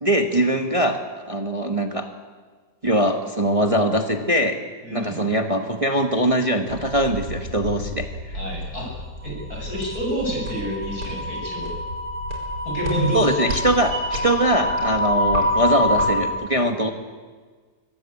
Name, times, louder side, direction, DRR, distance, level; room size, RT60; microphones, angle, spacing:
voice 1, 0.0-2.1 2.8-4.6 4.9-8.4 13.1-16.9, right 1 dB, 20° right, 4 dB, 1.4 m, -22 dB
voice 2, 4.8-5.2 8.3-8.9 9.2-11.7 12.6-13.4, equal, 70° left, -1 dB, 8.4 m, -28 dB
sound 1, 6.7-16.4, equal, 85° right, 5.5 m, -27 dB
23.5 x 20.0 x 8.5 m, 1.5 s
omnidirectional pair, 1.7 m